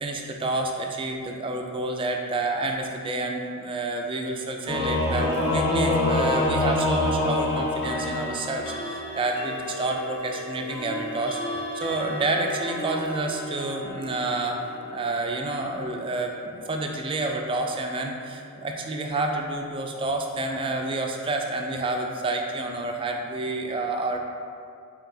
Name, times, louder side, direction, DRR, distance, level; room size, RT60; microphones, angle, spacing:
voice 1, 0.0-24.2, right 2 dB, 25° right, 2 dB, 0.3 m, -29 dB
Singing / Musical instrument, 4.7-8.7, left 2 dB, 20° left, 1.2 m, -24 dB
sound 1, 5.3-5.5 7.2-20.0, equal, 55° left, 0.5 m, -37 dB
4.6 x 2.9 x 2.7 m, 2.3 s
head